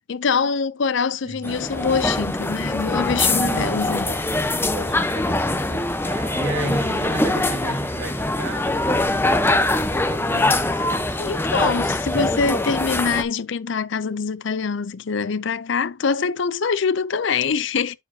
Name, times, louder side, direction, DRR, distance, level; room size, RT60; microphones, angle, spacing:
voice 1, 0.1-4.1 11.2-17.9, left 5 dB, 60° left, 0.5 m, -24 dB
voice 2, 1.2-1.6 3.5-4.2 4.7-11.2, right 2 dB, 65° right, 2.2 m, -34 dB
sound 1, 1.4-13.2, left 2 dB, 10° left, 0.8 m, -23 dB
sound 2, 6.0-9.5 10.0-10.1, right 4 dB, 35° right, 1.6 m, -41 dB
11.0 x 4.8 x 2.8 m
head